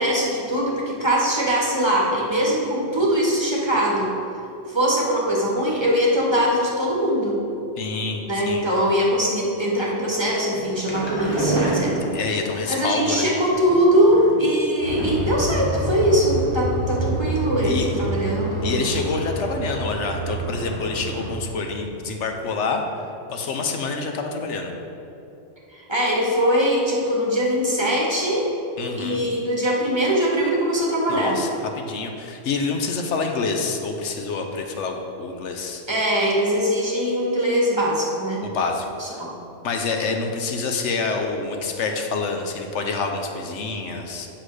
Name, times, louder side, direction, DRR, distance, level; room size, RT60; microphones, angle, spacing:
voice 1, 0.0-4.1 4.7-7.4 8.3-12.1 12.7-18.9 25.7-28.5 28.9-31.4 35.9-38.4 39.0-39.3, equal, 25° right, -4 dB, 1.3 m, -21 dB
voice 2, 7.8-8.6 12.1-13.3 17.6-17.9 18.6-24.7 28.8-29.2 31.1-35.8 38.4-39.2 39.6-44.3, left 4 dB, 75° left, 4 dB, 1.0 m, -27 dB
sound 1, 10.5-12.6 13.6-14.5 15.0-15.4 15.7-15.8 16.1-16.2, right 2 dB, 25° left, 1.5 m, -26 dB
sound 2, 14.8-21.3, right 1 dB, 45° left, 2.4 m, -28 dB
8.2 x 6.1 x 4.9 m, 2.9 s
omnidirectional pair, 1.2 m